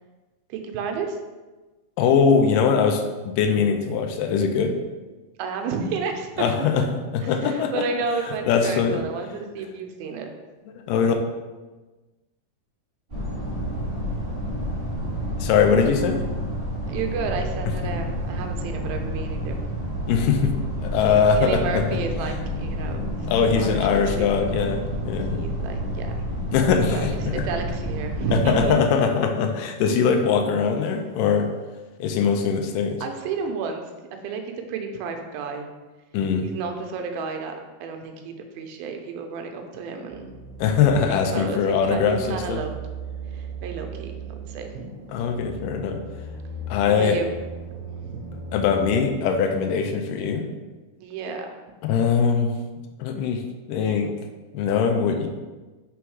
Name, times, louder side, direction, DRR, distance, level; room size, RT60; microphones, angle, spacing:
voice 1, 0.5-1.2 5.4-6.3 6.8-6.9 7.2-10.3 16.9-19.6 21.4-24.3 25.3-26.1 26.9-28.8 29.9-30.2 33.0-33.8 34.2-34.4 34.7-35.6 36.4-40.3 41.1-42.7 43.3-44.1 44.5-44.9 46.9-47.3 48.0-48.3 51.0-51.5, right 5 dB, 90° right, 4 dB, 2.5 m, -31 dB
voice 2, 2.0-4.8 6.4-6.8 7.1-7.7 8.5-9.0 10.8-11.1 15.4-16.2 20.1-20.5 20.8-21.8 23.3-25.4 26.5-27.1 28.3-31.5 32.0-33.0 36.1-36.5 40.6-42.6 45.1-46.0 46.7-47.2 48.5-50.5 51.8-52.5 53.0-53.4 53.7-54.1 54.5-55.3, left 6 dB, 80° left, 4 dB, 2.0 m, -21 dB
sound 1, 13.1-28.8, equal, 30° right, 1.0 m, -29 dB
sound 2, 40.1-48.9, right 3 dB, 70° right, 1.9 m, -37 dB
6.2 x 3.5 x 4.7 m, 1.2 s
omnidirectional pair, 4.2 m